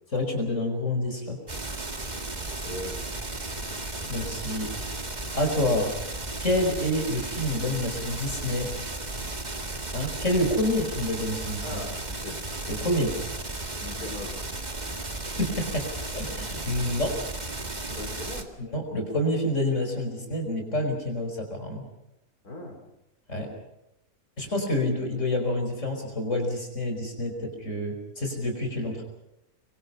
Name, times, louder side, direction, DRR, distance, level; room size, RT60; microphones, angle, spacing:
voice 1, 0.1-1.4 4.1-4.7 5.3-6.0 6.4-8.7 9.9-11.6 12.7-13.1 15.2-17.2 18.6-21.8 23.3-23.5 24.4-29.0, left 1 dB, 55° left, 3 dB, 5.6 m, -28 dB
sound 1, 1.5-18.4, right 2 dB, 30° right, 2.1 m, -34 dB
voice 2, 2.6-3.3 11.6-12.4 13.8-14.5 17.8-18.5 22.4-22.8, left 1 dB, 85° left, 2 dB, 4.8 m, -39 dB
26.0 x 24.0 x 5.6 m, 0.87 s
omnidirectional pair, 1.6 m